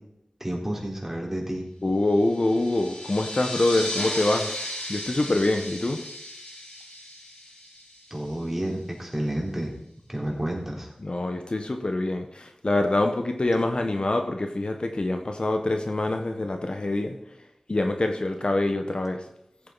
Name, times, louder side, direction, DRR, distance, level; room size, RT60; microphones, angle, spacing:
voice 1, 0.4-1.6 8.1-9.7 10.1-10.9, right 1 dB, 15° right, -1 dB, 3.9 m, -30 dB
voice 2, 1.8-4.5 4.9-6.0 11.0-17.1 17.7-19.2, left 2 dB, 50° left, 5 dB, 1.2 m, -25 dB
sound 1, 2.2-8.4, left 1 dB, 80° left, 4.1 m, -35 dB
15.0 x 8.5 x 4.1 m, 0.81 s
wide cardioid pair, 45°, 2 cm